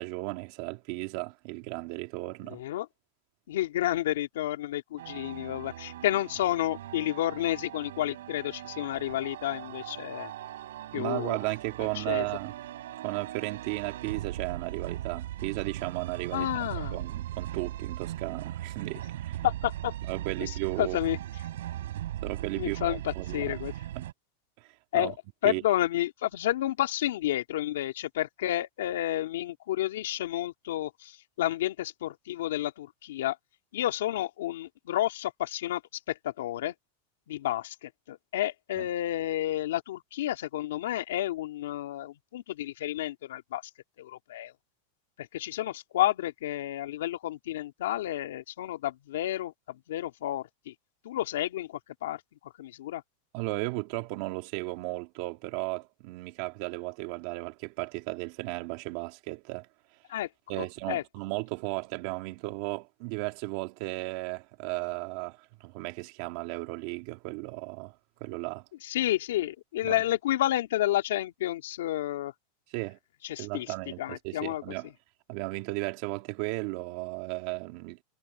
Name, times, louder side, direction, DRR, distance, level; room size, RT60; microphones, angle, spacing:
voice 1, 0.0-2.6 10.9-12.5 13.0-19.4 20.0-21.0 22.2-23.6 23.9-24.1 24.6-25.1 25.4-25.6 38.8-38.9 53.3-59.7 60.5-68.0 68.2-68.6 69.8-70.0 72.7-73.0 73.4-74.9 75.3-78.0, right 23 dB, 50° right, 2.4 m, -35 dB
voice 2, 2.5-2.9 3.5-10.3 10.9-11.4 11.9-12.2 16.3-17.0 19.4-19.9 20.4-20.5 20.8-21.2 22.6-23.7 24.9-25.1 25.4-33.4 33.7-35.8 36.1-36.7 37.3-43.6 44.0-44.5 45.2-50.7 51.0-52.2 52.6-53.0 60.1-60.3 60.6-61.0 68.8-72.3 73.2-73.7 74.0-74.6, left 13 dB, 85° left, 2.7 m, -30 dB
sound 1, 5.0-24.1, right 13 dB, 90° right, 5.3 m, -39 dB
supercardioid pair, 155°, 0 cm